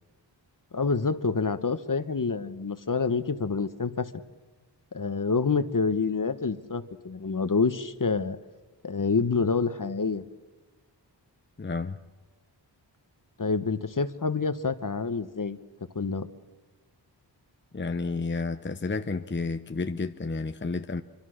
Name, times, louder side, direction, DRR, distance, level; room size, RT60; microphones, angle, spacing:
voice 1, 0.7-4.1 4.9-8.4 8.8-10.2 13.4-15.6 15.9-16.3, left 4 dB, 45° left, 1.3 m, -27 dB
voice 2, 11.6-12.0 17.7-21.0, left 3 dB, 25° left, 0.8 m, -31 dB
25.0 x 24.5 x 6.5 m
wide cardioid pair, 55°, 44 cm